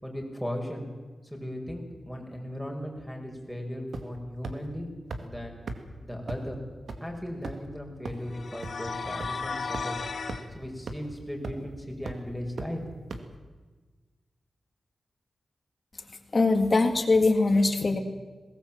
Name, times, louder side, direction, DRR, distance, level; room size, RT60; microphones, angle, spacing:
voice 1, 0.0-0.9 1.2-4.9 5.2-5.6 6.0-6.6 7.0-10.0 10.5-12.8, equal, ahead, 2 dB, 5.3 m, -37 dB
sound 1, 3.9-4.2 4.4-4.5 5.1-5.2 5.7-5.8 6.3-6.4 6.9-7.0 7.4-7.7 8.0-8.1 8.6-8.7 9.2-9.3 9.7-9.8 10.3-10.4 10.9-11.0 11.4-11.7 12.1-12.2 12.6-12.7 13.1-13.2, right 3 dB, 75° right, 2.1 m, -35 dB
sound 2, 8.3-10.4, left 4 dB, 65° left, 2.5 m, -35 dB
voice 2, 16.3-18.0, left 3 dB, 40° left, 6 dB, 2.3 m, -22 dB
21.0 x 18.5 x 7.5 m, 1.3 s
wide cardioid pair, 85°, 0 cm